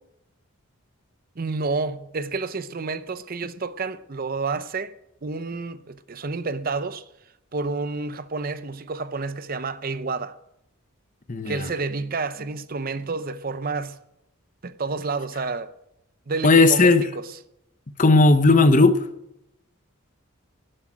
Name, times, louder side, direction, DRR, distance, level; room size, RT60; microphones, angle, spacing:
voice 1, 1.4-5.0 5.2-7.0 7.5-10.4 11.5-14.0 14.6-15.7 16.3-17.3, right 3 dB, 40° right, 0.6 m, -29 dB
voice 2, 11.3-11.7 16.4-17.0 18.0-19.1, left 3 dB, 35° left, 0.8 m, -16 dB
12.0 x 7.8 x 10.0 m
head